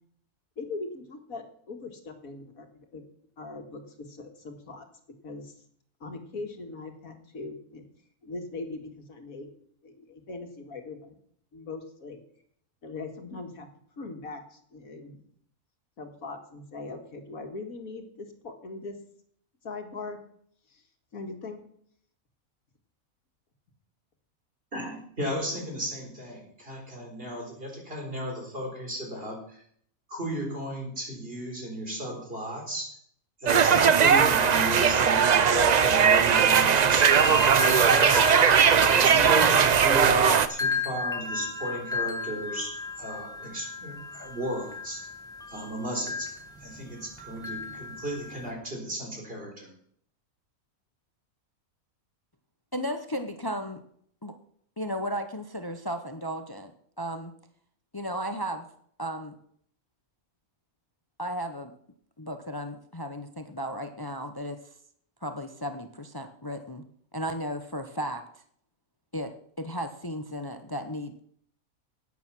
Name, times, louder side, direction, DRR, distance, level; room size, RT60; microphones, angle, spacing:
voice 1, 0.6-2.7 2.9-3.0 3.4-4.9 5.2-5.5 6.0-7.8 8.2-9.5 9.8-11.2 11.5-12.2 12.8-13.7 14.0-15.2 16.0-19.0 19.6-20.2 20.7-20.8 21.1-21.6, left 3 dB, 80° left, 5 dB, 2.2 m, -40 dB
voice 2, 24.7-29.6 30.1-33.0 33.4-38.3 38.7-45.1 45.5-46.3 46.6-49.7, equal, 40° right, 0 dB, 4.2 m, -34 dB
sound 1, 33.5-40.5, right 7 dB, 60° right, 0.4 m, -19 dB
sound 2, 36.9-48.5, left 4 dB, 5° left, 1.7 m, -35 dB
voice 3, 52.7-53.8 54.2-54.4 54.8-56.7 57.0-57.3 57.9-58.7 59.0-59.3 61.2-61.7 62.2-64.6 65.2-66.8 67.1-68.4 69.1-71.2, equal, 20° left, 8 dB, 0.6 m, -34 dB
11.5 x 9.6 x 6.1 m, 0.64 s
omnidirectional pair, 1.5 m